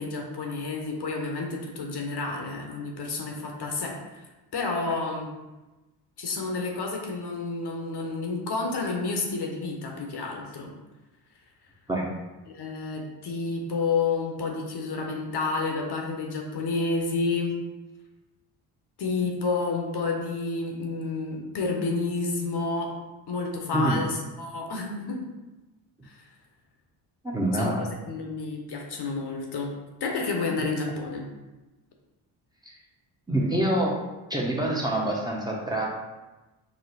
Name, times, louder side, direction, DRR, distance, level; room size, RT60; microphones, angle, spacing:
voice 1, 0.0-4.3 4.5-5.3 6.2-10.7 12.5-17.5 19.0-23.0 23.3-25.2 26.0-26.2 27.5-27.7 28.1-29.7 30.0-31.3, left 3 dB, 55° left, 1 dB, 0.8 m, -30 dB
voice 2, 27.2-27.8 32.6-32.8 33.3-33.9 34.3-35.9, right 1 dB, 10° right, -3 dB, 0.8 m, -26 dB
4.2 x 2.1 x 4.0 m, 1.1 s
supercardioid pair, 60°, 47 cm